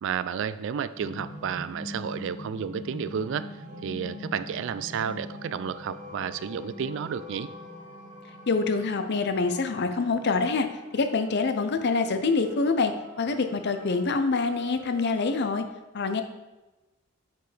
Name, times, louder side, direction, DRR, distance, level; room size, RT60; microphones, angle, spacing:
voice 1, 0.0-3.5 3.8-7.5, right 7 dB, 60° right, 14 dB, 0.3 m, -31 dB
sound 1, 0.9-15.7, left 1 dB, 35° right, 1.4 m, -44 dB
voice 2, 8.5-10.7 10.9-15.7 15.9-16.2, left 4 dB, 55° left, 8 dB, 0.6 m, -25 dB
9.1 x 4.6 x 3.3 m, 1.1 s
head